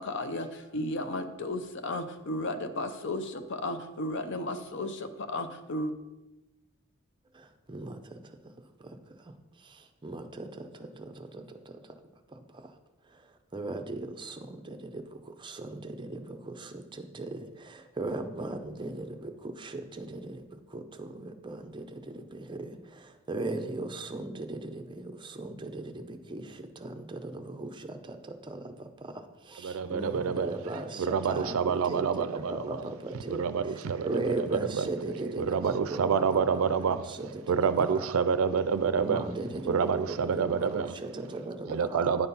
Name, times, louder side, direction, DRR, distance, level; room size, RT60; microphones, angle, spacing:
voice 1, 0.0-5.9, left 1 dB, 60° left, 9 dB, 0.6 m, -34 dB
voice 2, 7.3-8.5 8.8-11.9 12.3-12.7 13.1-38.1 39.0-42.2, right 2 dB, 20° right, 6 dB, 0.6 m, -38 dB
voice 3, 29.6-30.5 31.0-32.8 33.3-34.9 35.4-37.2 37.5-39.2 39.7-40.9 41.7-42.3, right 6 dB, 70° right, 12 dB, 0.4 m, -28 dB
9.7 x 4.4 x 5.4 m, 1.0 s
head